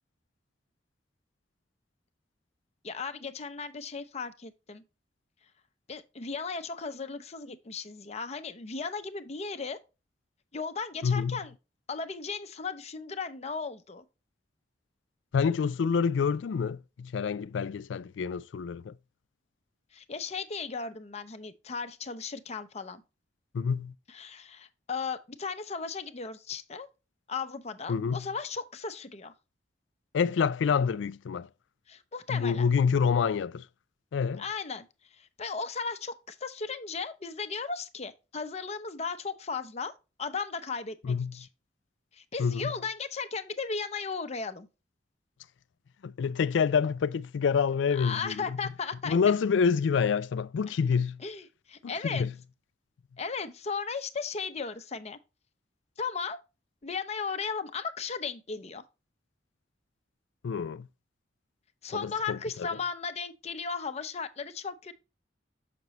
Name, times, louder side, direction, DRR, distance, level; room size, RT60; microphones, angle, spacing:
voice 1, 2.8-4.8 5.9-9.8 10.5-11.5 11.9-14.0 19.9-23.0 24.1-26.9 27.3-29.3 31.9-32.7 34.4-34.9 35.1-39.9 40.2-41.5 42.1-44.7 48.0-49.2 51.2-52.3 53.2-55.2 56.0-56.4 56.8-58.8 61.8-64.9, left 5 dB, 35° left, 0.7 m, -36 dB
voice 2, 11.0-11.4 15.3-18.9 23.5-23.9 27.9-28.3 30.1-31.5 32.3-33.7 34.1-34.4 41.0-41.3 42.4-42.7 46.0-48.4 49.0-51.2 52.0-52.3 60.4-60.9 61.9-62.4, left 6 dB, 90° left, 0.4 m, -27 dB
6.7 x 6.0 x 3.0 m
head